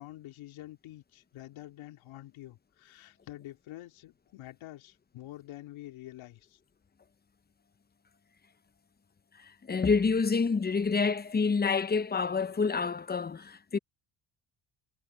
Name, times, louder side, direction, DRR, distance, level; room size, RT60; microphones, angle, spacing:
voice 1, 0.0-6.6, left 15 dB, 75° left, 3.2 m, -47 dB
voice 2, 9.7-13.8, left 5 dB, 20° left, 0.9 m, -27 dB
supercardioid pair, 90°, 48 cm